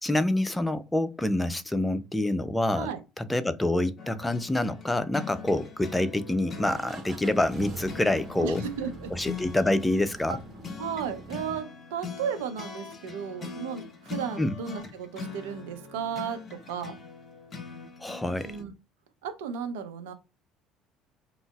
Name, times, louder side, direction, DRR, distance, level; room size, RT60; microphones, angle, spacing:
voice 1, 0.0-2.9 3.2-8.6 9.1-10.4 14.4-14.6 18.0-18.6, left 1 dB, 10° left, 0.4 m, -27 dB
sound 1, 4.0-18.6, left 5 dB, 35° left, 0.8 m, -42 dB
sound 2, 5.3-6.0 6.7-11.6, right 2 dB, 35° right, 1.1 m, -44 dB
voice 2, 8.4-9.1 10.3-10.4 10.8-16.9 18.4-18.7 19.2-20.1, right 7 dB, 75° right, 0.6 m, -34 dB
3.6 x 2.0 x 2.3 m
hypercardioid pair, 60°, 0 cm